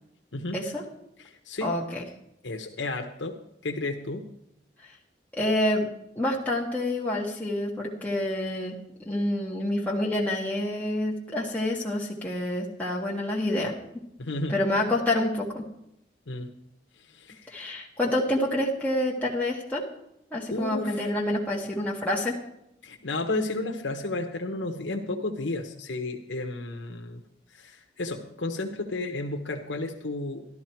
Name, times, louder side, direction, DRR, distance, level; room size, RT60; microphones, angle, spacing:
voice 1, 0.5-0.8 1.6-2.0 4.8-5.0 5.3-5.9 6.2-8.8 9.1-13.7 14.5-15.6 17.5-19.9 20.3-22.4, left 1 dB, 10° left, -4 dB, 1.6 m, -27 dB
voice 2, 1.2-1.7 2.4-3.4 3.6-4.3 14.2-14.6 16.3-16.5 16.9-17.6 20.5-21.1 22.8-27.2 27.5-30.4, left 2 dB, 75° left, 3 dB, 1.1 m, -32 dB
12.5 x 12.5 x 4.5 m, 0.80 s
head